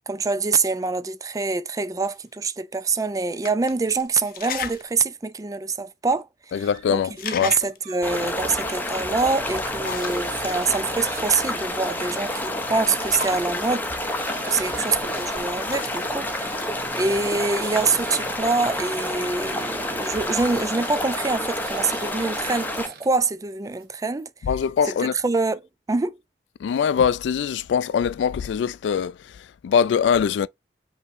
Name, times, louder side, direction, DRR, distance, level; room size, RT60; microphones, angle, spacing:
voice 1, 0.1-6.3 6.5-14.2 14.4-16.7 16.9-24.3 24.9-26.2, right 4 dB, 20° right, 0.4 m, -25 dB
sound 1, 2.0-2.1 2.9-3.0 3.4-4.9 5.3-5.4 6.1-6.2 6.4-6.8 7.0-7.9 9.0-10.3 12.1-13.7 14.8-16.2, left 8 dB, 55° left, 0.6 m, -36 dB
voice 2, 6.5-7.5 24.4-25.2 26.6-29.1 29.6-30.5, left 7 dB, 90° left, 0.3 m, -22 dB
sound 2, 6.6-7.1 7.4-17.2 17.6-21.2 21.6-23.3 23.6-24.3, right 5 dB, 55° right, 1.2 m, -45 dB
sound 3, 8.0-22.9, left 1 dB, 10° left, 0.7 m, -29 dB
5.4 x 3.0 x 2.6 m
head